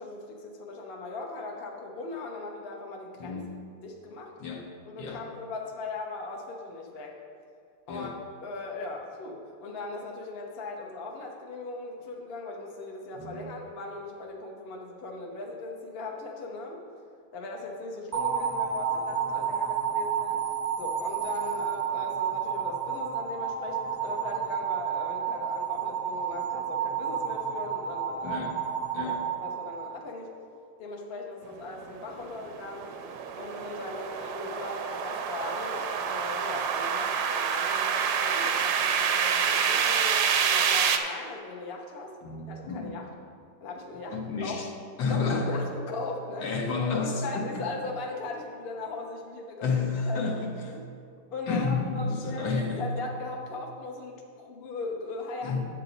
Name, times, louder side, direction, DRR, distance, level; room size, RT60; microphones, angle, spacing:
voice 1, 0.0-3.4 3.8-4.3 4.9-7.2 7.9-16.8 17.3-20.4 20.8-28.4 28.9-30.3 30.8-32.9 33.4-42.1 42.5-43.0 43.6-44.6 45.1-46.5 46.9-49.7 50.1-50.4 50.7-50.8 51.3-55.6, left 3 dB, 40° left, 0 dB, 1.0 m, -38 dB
voice 2, 3.2-3.5 4.4-4.7 5.0-5.2 7.9-8.1 13.1-13.5 28.2-28.6 28.9-29.3 42.2-43.0 44.1-44.7 45.0-45.6 46.4-47.6 49.6-50.8 51.5-52.8 55.4-55.7, left 4 dB, 75° left, 1 dB, 1.7 m, -31 dB
sound 1, 18.1-30.3, right 8 dB, 20° right, 0.4 m, -31 dB
sound 2, 31.9-41.0, right 7 dB, 70° right, 1.1 m, -27 dB
9.9 x 8.1 x 3.9 m, 2.3 s
omnidirectional pair, 2.1 m